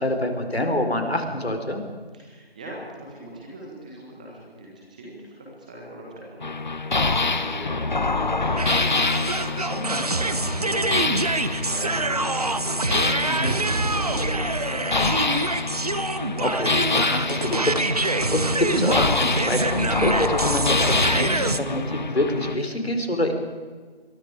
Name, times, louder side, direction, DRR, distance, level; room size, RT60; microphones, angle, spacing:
voice 1, 0.0-1.8 9.4-10.1 13.3-13.6 16.4-23.3, left 1 dB, 75° left, 5 dB, 4.7 m, -26 dB
voice 2, 2.1-15.8, right 1 dB, 10° right, -3 dB, 1.5 m, -41 dB
sound 1, 6.4-22.6, left 3 dB, 45° left, 0.9 m, -26 dB
sound 2, 8.6-21.6, right 2 dB, 40° right, 1.0 m, -26 dB
27.5 x 22.5 x 5.1 m, 1.5 s
figure-of-eight pair, 165°, 31 cm